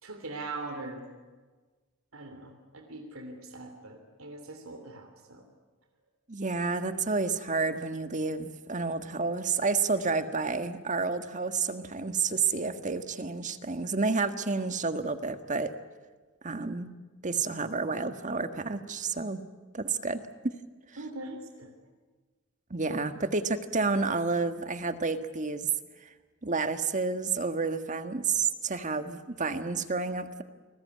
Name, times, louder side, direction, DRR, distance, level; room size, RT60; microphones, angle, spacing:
voice 1, 0.0-1.0 2.1-5.4 21.0-21.7, right 2 dB, 85° right, 5 dB, 3.2 m, -41 dB
voice 2, 6.3-15.7 16.4-16.9 17.2-19.4 19.7-20.2 22.7-25.7 26.4-30.4, right 4 dB, 35° right, 9 dB, 1.6 m, -30 dB
29.5 x 20.5 x 9.6 m, 1.3 s
head